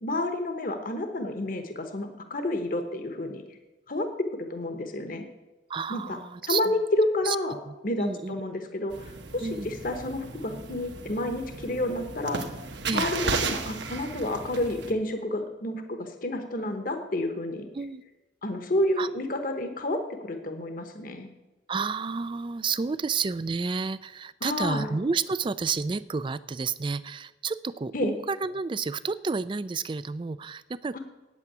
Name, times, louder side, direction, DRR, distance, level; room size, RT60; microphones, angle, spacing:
voice 1, 0.0-3.4 3.9-4.1 4.5-5.2 5.9-6.2 6.5-7.6 7.8-12.4 12.9-17.7 18.4-21.3 24.4-24.9 27.9-28.1 30.9-31.0, left 1 dB, 45° left, 6 dB, 1.1 m, -30 dB
voice 2, 5.7-6.7 7.2-7.4 7.7-8.3 9.4-9.7 12.9-13.0 17.7-18.0 19.0-19.1 21.7-31.0, right 4 dB, 25° right, 16 dB, 0.3 m, -30 dB
sound 1, 8.9-14.9, right 4 dB, 65° right, 1.1 m, -34 dB
9.1 x 8.4 x 8.8 m, 1.1 s
head